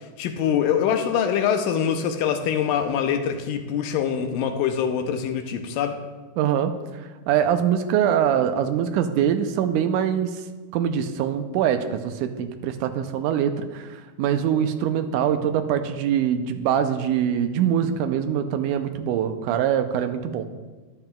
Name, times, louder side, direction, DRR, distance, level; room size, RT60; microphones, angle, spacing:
voice 1, 0.2-6.0, left 8 dB, 80° left, 6 dB, 2.3 m, -24 dB
voice 2, 6.4-10.4 10.7-20.5, right 9 dB, 80° right, 8 dB, 2.0 m, -23 dB
13.0 x 10.5 x 2.3 m, 1.3 s
omnidirectional pair, 4.0 m